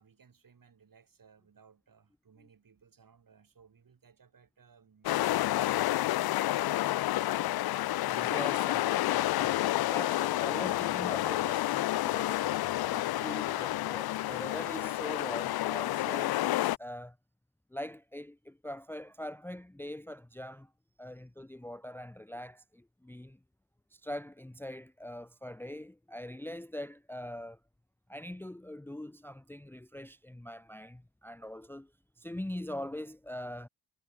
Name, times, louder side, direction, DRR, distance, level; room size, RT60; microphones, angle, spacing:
voice 1, 0.0-7.5, right 6 dB, 50° right, 4.8 m, -62 dB
sound 1, 5.0-16.8, left 15 dB, 60° left, 0.5 m, -30 dB
voice 2, 8.0-12.4 12.8-17.2 17.7-20.7 21.0-23.4 23.9-27.6 28.1-31.9 32.2-33.7, left 1 dB, 5° left, 0.8 m, -42 dB
cardioid pair, 60°, 41 cm